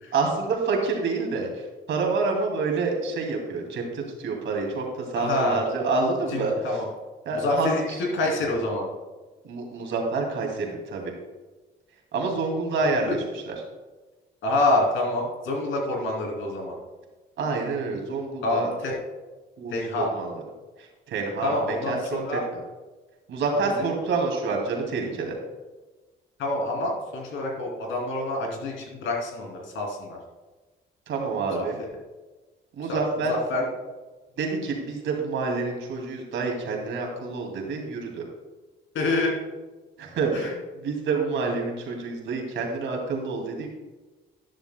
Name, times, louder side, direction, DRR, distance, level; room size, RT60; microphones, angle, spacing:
voice 1, 0.1-1.5 1.9-4.8 5.1-6.5 7.3-7.7 9.4-11.1 12.1-13.2 13.5-13.6 17.4-18.7 19.6-20.3 21.1-22.0 23.3-25.4 31.1-31.8 32.8-33.6 34.4-38.2 40.0-43.7, right 4 dB, 75° right, 1 dB, 2.4 m, -27 dB
voice 2, 5.1-5.6 6.3-6.9 7.3-7.8 8.1-8.9 13.1-13.2 14.4-16.8 18.4-18.9 19.7-20.1 21.4-22.4 23.8-23.9 26.4-30.2 31.5-31.6 32.9-33.0 33.3-33.6 38.9-39.3 40.3-40.5, left 2 dB, 80° left, -1 dB, 2.9 m, -27 dB
12.0 x 10.5 x 2.2 m, 1.2 s
cardioid pair, 90°, 20 cm